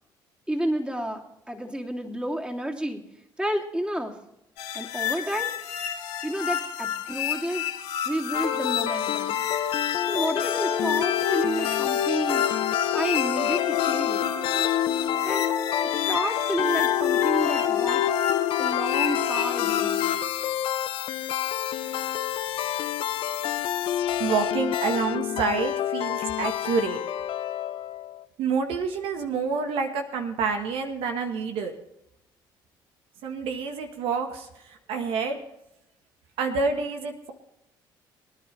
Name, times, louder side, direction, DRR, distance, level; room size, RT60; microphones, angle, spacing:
voice 1, 0.5-1.2 1.5-3.0 3.4-4.1 4.7-5.5 6.2-7.7 8.0-9.4 10.0-12.5 12.9-14.2 15.2-15.5 16.1-18.0 18.6-20.1, right 1 dB, 10° right, 0 dB, 2.9 m, -30 dB
sound 1, 4.6-20.2, left 9 dB, 85° left, 1.7 m, -28 dB
sound 2, 8.3-28.2, left 11 dB, 65° left, 0.7 m, -28 dB
voice 2, 24.2-27.0 28.4-31.7 33.2-35.4 36.4-37.3, right 5 dB, 75° right, 5 dB, 1.5 m, -28 dB
23.5 x 10.0 x 3.3 m, 0.83 s
supercardioid pair, 65°, 10 cm